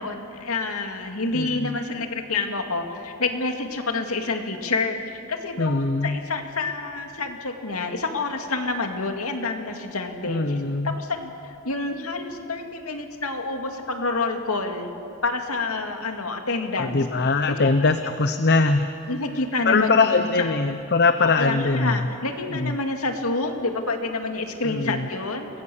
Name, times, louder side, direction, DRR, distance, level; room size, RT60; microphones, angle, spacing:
voice 1, 0.0-10.6 10.8-14.9 15.2-17.0 17.5-17.7 19.1-20.5 21.2-25.5, left 3 dB, 85° left, 4 dB, 2.4 m, -28 dB
voice 2, 1.3-1.7 5.6-6.2 10.3-11.0 16.8-18.9 19.7-22.0 22.5-22.7 24.6-25.1, left 3 dB, 50° left, 9 dB, 0.8 m, -22 dB
28.0 x 22.5 x 7.2 m, 2.7 s
head